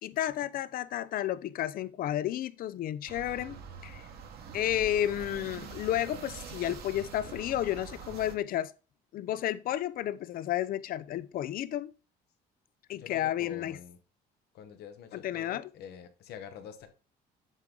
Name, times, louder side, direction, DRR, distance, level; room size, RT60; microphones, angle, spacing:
voice 1, 0.0-4.0 4.5-8.7 9.1-11.9 12.9-13.8 15.1-15.6, left 12 dB, 60° left, 0.5 m, -32 dB
sound 1, 3.1-8.3, right 7 dB, 70° right, 1.2 m, -44 dB
voice 2, 12.9-14.0 14.5-16.9, left 8 dB, 75° left, 1.1 m, -46 dB
7.5 x 3.8 x 3.8 m
cardioid pair, 110°, 17 cm